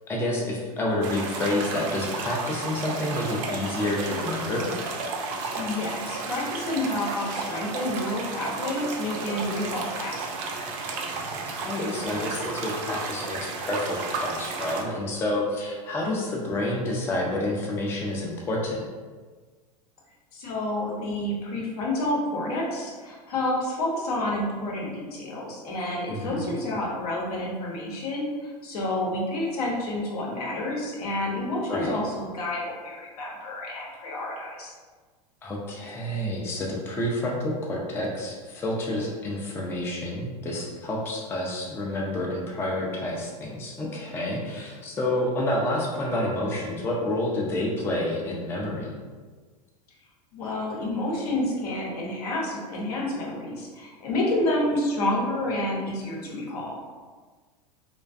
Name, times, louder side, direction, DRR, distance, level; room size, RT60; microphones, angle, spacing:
voice 1, 0.1-4.7 11.3-18.8 26.1-26.6 31.7-31.9 35.4-48.9, left 1 dB, 10° left, -2 dB, 0.4 m, -29 dB
sound 1, 1.0-14.8, right 3 dB, 55° right, 0.5 m, -33 dB
voice 2, 5.5-10.3 20.3-34.7 50.3-56.8, left 1 dB, 70° left, -3 dB, 0.8 m, -29 dB
2.4 x 2.2 x 2.4 m, 1.4 s
hypercardioid pair, 90°, 21 cm